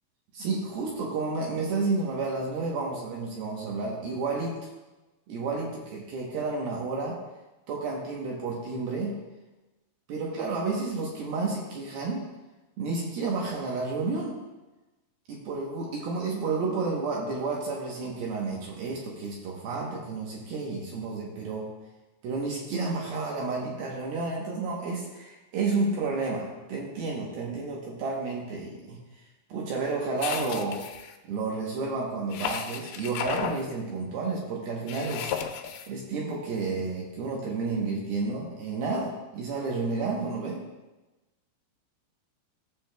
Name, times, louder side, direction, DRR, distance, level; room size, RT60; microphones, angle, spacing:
voice 1, 0.3-4.7 5.3-7.2 7.7-9.2 10.1-12.2 12.8-14.4 15.3-21.7 22.2-29.0 29.5-30.8 31.3-35.3 35.9-40.6, right 3 dB, 70° right, -2 dB, 2.5 m, -31 dB
sound 1, 30.2-31.1 32.3-33.6 34.9-35.9, left 8 dB, 85° left, 2.3 m, -34 dB
15.0 x 7.0 x 2.2 m, 1.1 s
omnidirectional pair, 5.2 m